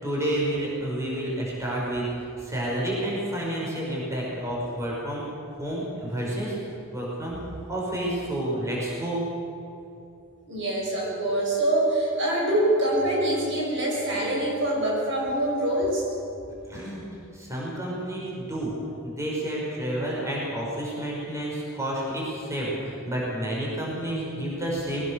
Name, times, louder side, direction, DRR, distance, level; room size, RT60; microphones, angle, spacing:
voice 1, 0.0-2.1 2.4-5.3 5.6-6.6 6.9-7.4 7.7-9.2 16.7-17.0 17.3-18.7 19.0-25.0, right 1 dB, 15° right, -4 dB, 5.6 m, -30 dB
voice 2, 10.4-16.1, right 1 dB, 60° right, -2 dB, 6.3 m, -25 dB
21.5 x 19.0 x 6.8 m, 2.7 s
head